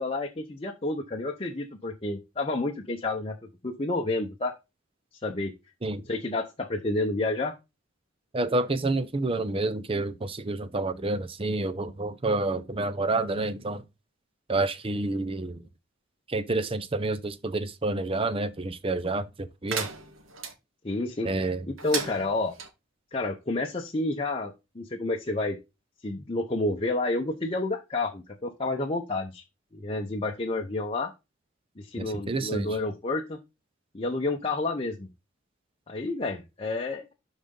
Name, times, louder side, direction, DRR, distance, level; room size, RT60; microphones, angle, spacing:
voice 1, 0.0-3.4 3.6-4.5 5.2-5.5 6.1-7.5 12.3-12.4 20.8-22.5 23.1-25.6 26.0-29.4 29.7-31.1 31.8-33.4 33.9-35.1 35.9-37.1, left 2 dB, 30° left, 0.8 m, -30 dB
voice 2, 8.3-13.9 14.5-15.6 16.3-19.9 21.2-21.7 32.0-32.8, right 2 dB, 30° right, 0.6 m, -29 dB
sound 1, 19.7-20.5 21.8-22.7, right 6 dB, 90° right, 1.6 m, -34 dB
11.5 x 4.0 x 3.8 m
head